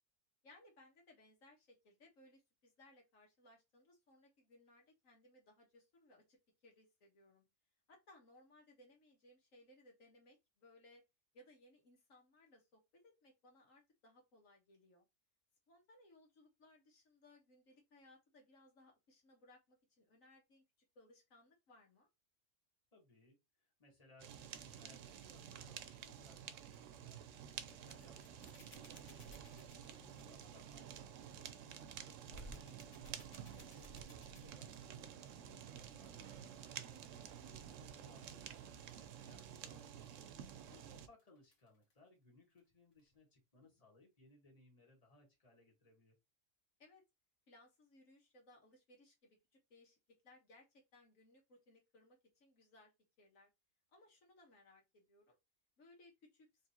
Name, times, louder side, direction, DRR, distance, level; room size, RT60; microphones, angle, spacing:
voice 1, 0.4-7.5 7.9-11.0 11.3-15.1 15.7-20.6 21.0-22.1 33.3-33.8 46.8-47.0 47.5-52.9 53.2-53.5 53.9-55.4 55.8-56.5, left 1 dB, 75° left, 1.7 m, -65 dB
voice 2, 22.9-32.9 33.2-40.0 40.4-46.2, left 2 dB, 25° left, 1.8 m, -67 dB
Fire, 24.2-41.1, right 9 dB, 75° right, 1.0 m, -51 dB
sound 1, 26.4-27.1 27.5-30.5 32.2-34.9 37.4-38.0 40.4-42.1 42.5-42.6 42.9-43.1, right 1 dB, 60° left, 1.8 m, -60 dB
4.6 x 3.3 x 2.9 m
omnidirectional pair, 1.4 m